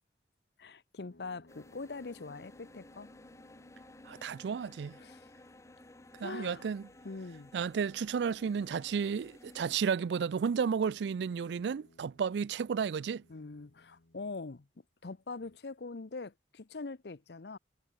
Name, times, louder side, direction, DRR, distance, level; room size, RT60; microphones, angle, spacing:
voice 1, 0.6-3.1 5.0-5.3 6.2-6.7 7.0-7.5 13.3-14.7 15.0-17.6, left 3 dB, 70° left, 0.7 m, -43 dB
sound 1, 1.1-8.4 10.4-14.6 15.2-15.6, left 1 dB, 85° left, 2.1 m, -64 dB
sound 2, 1.5-9.8, left 1 dB, 15° left, 0.6 m, -56 dB
voice 2, 4.1-5.0 6.2-6.9 7.5-13.2, right 6 dB, 75° right, 0.4 m, -32 dB
head